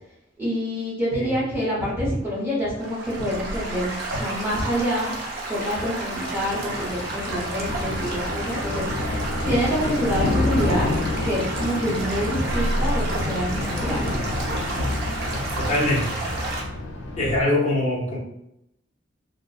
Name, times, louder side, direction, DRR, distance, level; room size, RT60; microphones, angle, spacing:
voice 1, 0.4-5.1 5.5-8.9 9.4-10.9 11.2-14.2, equal, 10° right, -7 dB, 0.9 m, -26 dB
Stream / Gurgling / Trickle dribble, 2.8-16.6, right 2 dB, 55° right, 0.5 m, -31 dB
Thunder, 6.3-17.4, left 2 dB, 85° left, 0.4 m, -28 dB
voice 2, 15.6-16.1 17.2-18.2, left 1 dB, 35° left, -4 dB, 0.6 m, -23 dB
2.6 x 2.1 x 2.3 m, 0.81 s
head